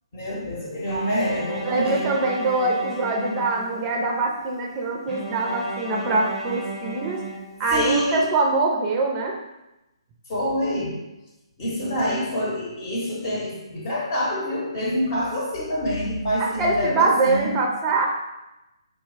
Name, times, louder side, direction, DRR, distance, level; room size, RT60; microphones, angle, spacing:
voice 1, 0.1-2.2 7.7-8.3 10.3-11.0 11.6-17.6, equal, 40° left, -4 dB, 0.9 m, -26 dB
Bowed string instrument, 0.9-4.1 5.1-8.0, right 2 dB, 10° left, 0.9 m, -34 dB
voice 2, 1.6-7.2 7.6-9.3 16.4-18.1, right 3 dB, 20° right, 0 dB, 0.4 m, -23 dB
3.6 x 2.3 x 3.2 m, 0.96 s
figure-of-eight pair, 140°, 3 cm